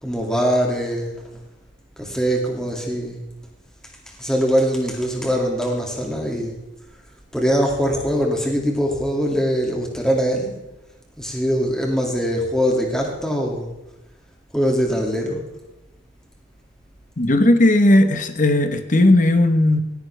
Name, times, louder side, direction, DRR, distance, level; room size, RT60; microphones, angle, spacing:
voice 1, 0.0-1.2 2.0-3.2 4.2-6.6 7.3-10.5 11.2-13.7 14.5-15.4, equal, 5° left, 0 dB, 2.2 m, -22 dB
voice 2, 17.2-19.8, left 1 dB, 40° left, 9 dB, 1.0 m, -16 dB
17.5 x 9.9 x 3.3 m, 1.0 s
head